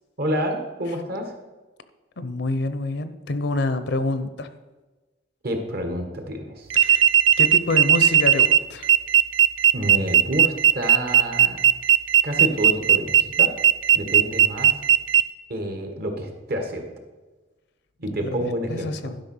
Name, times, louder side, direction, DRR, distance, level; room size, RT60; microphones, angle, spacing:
voice 1, 0.2-1.3 5.4-6.7 9.7-11.6 12.2-13.5 13.9-14.8 15.5-16.8 18.0-19.1, equal, 55° right, 5 dB, 1.5 m, -28 dB
voice 2, 2.2-4.5 6.7-7.1 7.4-8.9 18.2-19.2, left 2 dB, 65° left, 11 dB, 0.7 m, -27 dB
sound 1, 6.7-15.2, right 9 dB, 85° right, 0.4 m, -17 dB
11.5 x 5.3 x 5.6 m, 1.2 s
head